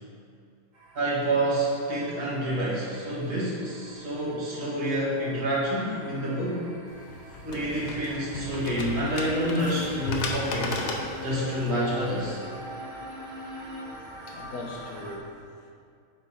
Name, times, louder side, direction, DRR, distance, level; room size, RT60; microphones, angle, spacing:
sound 1, 0.7-15.2, right 1 dB, 35° right, 0.8 m, -46 dB
voice 1, 0.9-6.6 7.4-10.8 11.2-12.4, right 1 dB, 70° right, -7 dB, 2.1 m, -28 dB
sound 2, 6.9-12.3, left 3 dB, 90° left, 1.4 m, -35 dB
Bowed string instrument, 8.2-14.0, left 3 dB, 20° right, 1.3 m, -40 dB
voice 2, 13.8-15.7, left 2 dB, 70° left, -1 dB, 1.3 m, -41 dB
6.6 x 4.0 x 4.8 m, 2.3 s
omnidirectional pair, 1.7 m